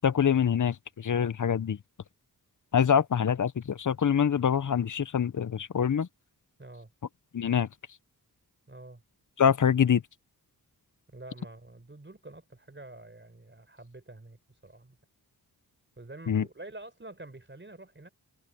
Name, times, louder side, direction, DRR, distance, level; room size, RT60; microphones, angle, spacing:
voice 1, 0.0-1.8 2.7-6.1 7.3-7.7 9.4-10.0 16.3-16.5, left 8 dB, 50° left, 0.8 m, -25 dB
voice 2, 6.6-6.9 8.7-9.0 11.1-15.0 16.0-18.1, right 2 dB, 30° right, 4.3 m, -47 dB
cardioid pair, 55°, 39 cm